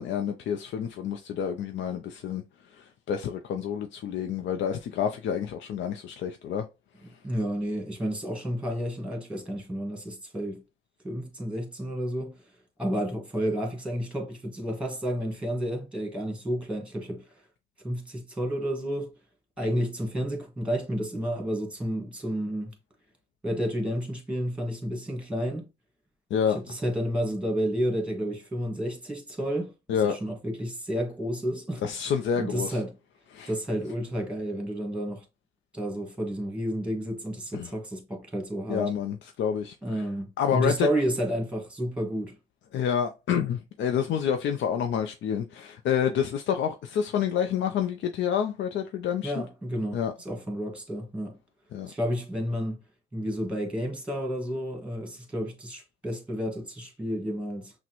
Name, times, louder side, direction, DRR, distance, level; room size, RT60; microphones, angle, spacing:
voice 1, 0.0-2.4 2.8-6.6 26.3-26.6 29.9-30.2 31.8-32.8 33.3-33.5 37.5-37.7 38.7-40.0 40.4-40.9 42.7-49.3 49.9-50.1 51.7-51.9, left 8 dB, 65° left, 0.5 m, -28 dB
voice 2, 7.2-10.6 11.0-12.3 12.8-17.2 17.8-19.1 19.6-22.7 23.4-25.6 26.5-31.9 32.3-33.0 33.5-35.2 35.7-38.9 39.8-42.3 49.2-51.4 51.9-52.8 53.1-57.7, equal, 5° right, 1.5 m, -31 dB
5.8 x 2.1 x 2.9 m
cardioid pair, 90°, 20 cm